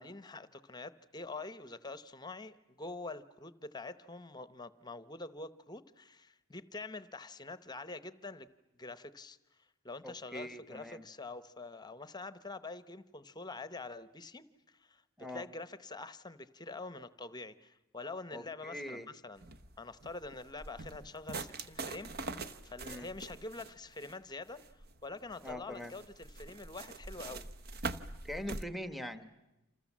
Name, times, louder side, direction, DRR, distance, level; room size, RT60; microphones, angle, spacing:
voice 1, 0.0-8.5 8.8-9.4 9.8-15.0 15.3-19.4 19.8-27.5, left 3 dB, 20° left, 14 dB, 0.9 m, -46 dB
voice 2, 10.0-11.0 15.2-15.4 18.3-19.1 22.8-23.1 25.4-25.9 28.2-29.3, left 1 dB, ahead, 10 dB, 1.2 m, -42 dB
sound 1, 19.4-28.7, right 3 dB, 45° right, 1.0 m, -44 dB
28.5 x 27.0 x 7.4 m, 1.0 s
head